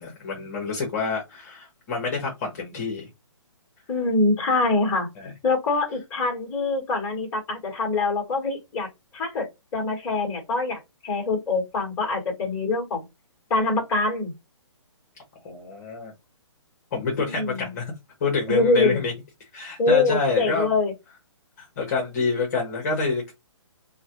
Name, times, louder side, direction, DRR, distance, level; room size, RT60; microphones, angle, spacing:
voice 1, 0.0-3.1 5.2-5.3 15.4-16.1 16.9-17.9 18.2-19.1 19.5-20.7 21.6-23.3, left 4 dB, 30° left, 1.1 m, -27 dB
voice 2, 3.9-5.1 5.4-9.5 9.7-13.0 13.5-14.3 17.2-17.7 18.5-19.0 19.8-20.9, left 3 dB, 15° left, 1.4 m, -24 dB
4.0 x 2.2 x 2.9 m
hypercardioid pair, 165°, 16 cm